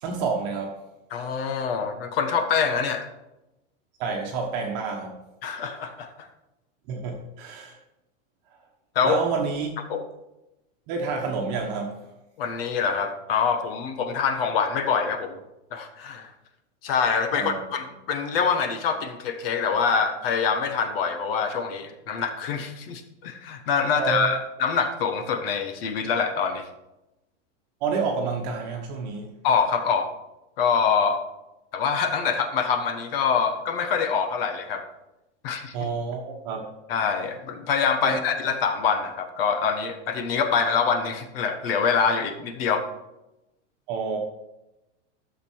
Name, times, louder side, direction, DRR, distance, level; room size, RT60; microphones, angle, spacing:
voice 1, 0.0-0.8 4.0-5.2 6.9-7.8 9.0-9.7 10.9-12.0 17.3-17.6 23.9-24.4 27.8-29.3 35.7-36.6 38.0-38.2 43.9-44.2, right 5 dB, 35° right, 1 dB, 1.3 m, -29 dB
voice 2, 1.1-3.1 5.4-6.3 8.9-9.2 9.9-10.0 12.4-15.4 15.7-16.3 16.8-26.7 29.4-30.1 30.6-31.2 31.7-34.8 35.4-35.7 36.9-42.8, left 6 dB, 50° left, 7 dB, 1.4 m, -25 dB
12.0 x 7.0 x 4.6 m, 0.94 s
supercardioid pair, 180°, 37 cm